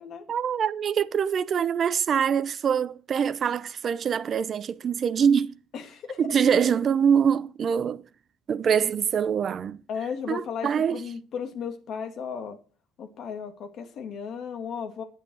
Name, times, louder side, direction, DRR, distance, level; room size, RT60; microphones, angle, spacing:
voice 1, 0.3-5.6 6.2-8.0 8.5-9.8 10.3-11.0, right 7 dB, 40° right, 0.7 m, -24 dB
voice 2, 5.7-6.2 9.9-12.6 13.0-15.0, left 7 dB, 50° left, 2.3 m, -35 dB
10.5 x 8.9 x 6.2 m
cardioid pair, 145°, 0 cm